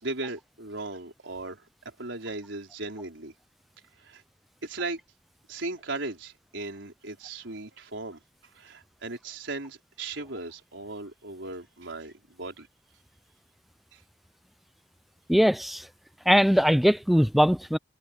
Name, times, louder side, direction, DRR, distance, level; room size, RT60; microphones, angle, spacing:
voice 1, 0.0-3.3 4.0-4.2 4.6-5.0 5.5-8.2 8.5-12.7 13.9-14.0, right 2 dB, 85° right, 4.4 m, -37 dB
voice 2, 15.3-15.9 16.3-17.8, equal, ahead, 0.4 m, -21 dB
head